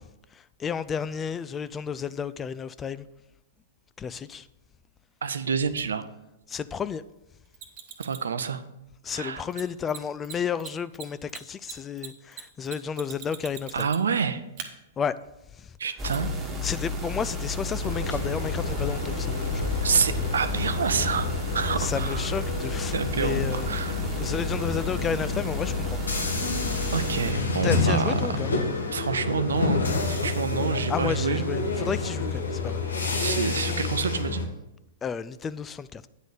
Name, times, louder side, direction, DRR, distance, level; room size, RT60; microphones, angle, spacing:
voice 1, 0.3-3.1 4.0-4.5 6.5-7.0 9.0-13.9 15.0-15.2 15.5-15.7 16.6-19.6 21.8-23.7 24.2-26.0 26.8-27.0 27.6-28.5 30.9-32.8 35.0-36.1, left 7 dB, 20° left, 0.3 m, -32 dB
voice 2, 5.2-6.1 8.0-8.6 9.1-9.5 13.7-14.4 15.8-16.3 19.8-21.3 21.5-22.3 22.9-24.0 26.9-28.1 28.9-31.4 33.2-34.4, right 6 dB, 75° right, 0.6 m, -28 dB
Mechanisms, 7.5-8.3 9.5-9.6 9.9-10.0 10.2-10.3 10.6-14.2 14.6-14.7 16.1-16.2, right 8 dB, 45° right, 1.1 m, -40 dB
sound 1, 16.0-27.3, left 2 dB, 15° right, 1.6 m, -32 dB
sound 2, 17.8-34.4, left 3 dB, 80° left, 1.2 m, -29 dB
9.0 x 4.1 x 6.7 m
figure-of-eight pair, 110°, 0 cm